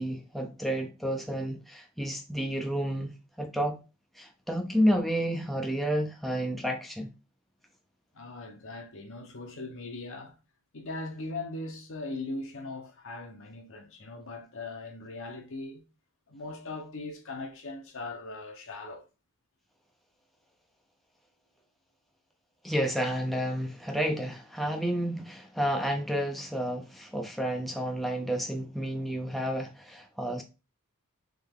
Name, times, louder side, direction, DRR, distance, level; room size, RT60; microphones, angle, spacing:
voice 1, 0.0-3.1 3.4-3.8 4.2-7.1 22.6-30.4, equal, ahead, 0.5 m, -30 dB
voice 2, 8.1-10.3 10.7-15.8 16.3-19.0, left 2 dB, 60° left, 0.9 m, -39 dB
3.6 x 3.4 x 3.6 m
head